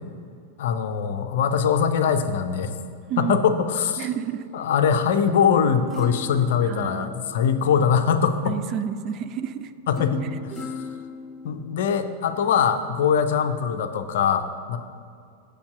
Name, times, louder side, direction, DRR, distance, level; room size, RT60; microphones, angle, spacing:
voice 1, 0.6-2.7 3.2-4.1 4.5-8.6 9.9-10.5 11.4-14.8, left 7 dB, 55° left, 9 dB, 0.6 m, -22 dB
voice 2, 3.1-3.5 4.0-4.5 6.6-7.1 8.5-9.7 10.2-10.4, right 8 dB, 35° right, 11 dB, 0.4 m, -30 dB
sound 1, 5.6-7.9 10.0-12.0 12.5-12.6, left 3 dB, 5° right, 1.1 m, -38 dB
7.1 x 6.7 x 7.5 m, 2.4 s
figure-of-eight pair, 90°, 0 cm